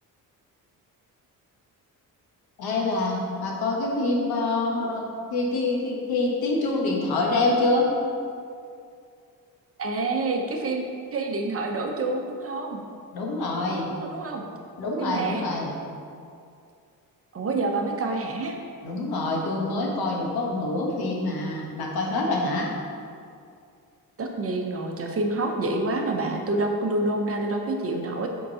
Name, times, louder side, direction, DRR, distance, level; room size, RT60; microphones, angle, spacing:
voice 1, 2.6-5.0 5.3-7.9 13.1-13.9 14.8-15.7 18.8-22.7, left 2 dB, 75° left, -1 dB, 1.3 m, -26 dB
voice 2, 9.8-10.8 11.1-12.8 13.9-14.5 15.0-15.5 17.3-18.6 24.2-28.3, right 2 dB, 40° right, 2 dB, 0.8 m, -27 dB
5.2 x 3.8 x 5.5 m, 2.4 s
cardioid pair, 90°, 37 cm